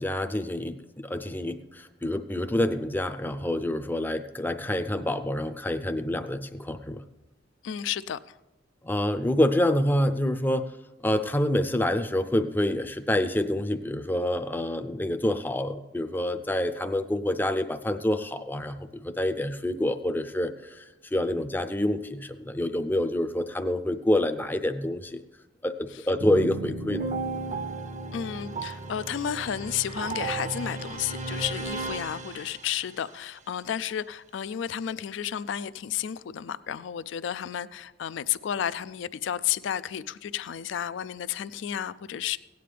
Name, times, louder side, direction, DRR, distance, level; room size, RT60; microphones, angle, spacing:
voice 1, 0.0-7.0 8.8-10.7 11.0-20.8 21.1-25.2 25.6-27.1, left 1 dB, 10° left, 8 dB, 0.5 m, -27 dB
voice 2, 7.6-8.4 28.1-42.4, left 9 dB, 70° left, 16 dB, 0.3 m, -32 dB
sound 1, 26.2-33.0, right 3 dB, 40° right, 0.6 m, -34 dB
17.0 x 9.3 x 3.4 m, 1.0 s
head